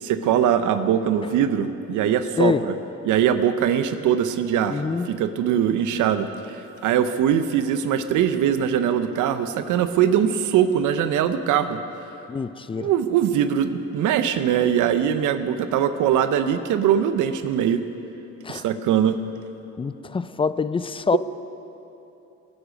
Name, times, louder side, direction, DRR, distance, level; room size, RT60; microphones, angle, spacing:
voice 1, 0.0-2.7 3.0-11.8 12.8-17.8 18.5-19.2, right 9 dB, 85° right, 10 dB, 0.7 m, -22 dB
voice 2, 4.7-5.1 12.3-12.9 18.4-18.6 19.8-21.2, left 5 dB, 20° left, 15 dB, 0.4 m, -25 dB
19.5 x 9.7 x 5.1 m, 2.9 s
cardioid pair, 90°, 30 cm